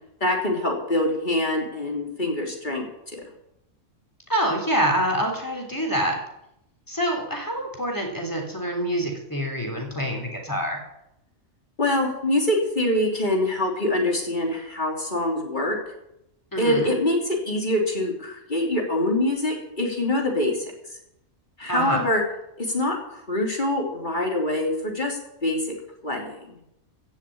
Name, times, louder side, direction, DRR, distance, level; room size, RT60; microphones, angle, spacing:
voice 1, 0.2-2.9 3.1-3.2 11.8-15.8 16.6-20.6 21.6-22.2 22.6-25.6 26.0-26.4, left 1 dB, 35° left, 0 dB, 3.2 m, -24 dB
voice 2, 4.3-6.2 6.9-10.8 16.5-16.9 21.7-22.1, equal, 15° left, 1 dB, 3.4 m, -26 dB
15.5 x 7.2 x 8.6 m, 0.82 s
omnidirectional pair, 1.4 m